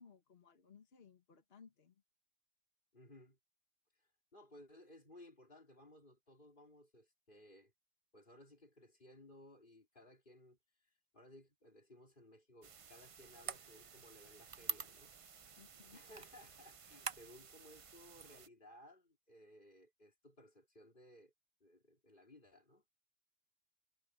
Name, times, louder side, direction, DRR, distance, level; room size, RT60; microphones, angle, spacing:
voice 1, 0.0-2.0 15.6-16.0, left 6 dB, 70° left, 1.6 m, -62 dB
voice 2, 2.9-3.4 3.9-7.7 8.1-15.1 15.9-21.3 21.6-22.8, left 1 dB, 55° left, 4.3 m, -61 dB
sound 1, 12.6-18.5, right 6 dB, 40° right, 0.6 m, -48 dB
omnidirectional pair, 1.1 m